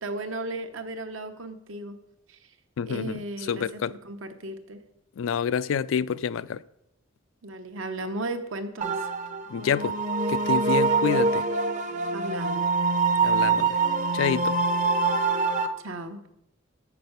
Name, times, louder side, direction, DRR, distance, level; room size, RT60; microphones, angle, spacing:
voice 1, 0.0-2.0 2.3-2.5 2.9-4.8 7.4-9.1 12.1-12.6 15.8-16.2, right 2 dB, 75° right, 0.9 m, -35 dB
voice 2, 2.8-3.2 3.5-3.9 5.2-6.6 9.5-9.9 10.3-11.5 13.2-13.8 14.1-14.5, left 7 dB, 75° left, 0.3 m, -27 dB
sound 1, 8.8-15.7, right 4 dB, 35° right, 0.6 m, -24 dB
7.9 x 6.0 x 6.7 m
head